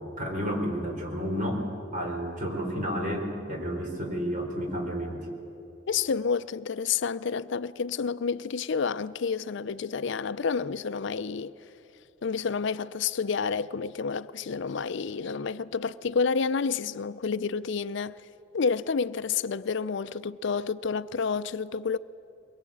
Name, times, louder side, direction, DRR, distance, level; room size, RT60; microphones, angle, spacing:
voice 1, 0.0-1.6 1.9-5.3, equal, 40° right, 4.3 m, -31 dB
voice 2, 5.9-11.5 12.2-18.2 18.5-22.0, left 5 dB, 65° left, 0.5 m, -29 dB
23.0 x 21.0 x 8.6 m
head